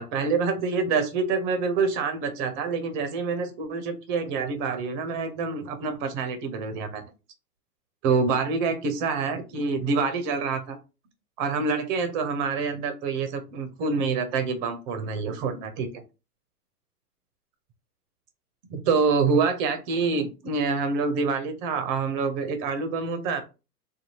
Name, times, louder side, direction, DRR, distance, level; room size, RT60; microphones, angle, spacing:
voice 1, 0.0-7.0 8.0-10.8 11.4-15.9 18.7-23.4, right 4 dB, 30° right, 8 dB, 0.6 m, -26 dB
2.6 x 2.3 x 3.0 m, 0.29 s
hypercardioid pair, 120°, 47 cm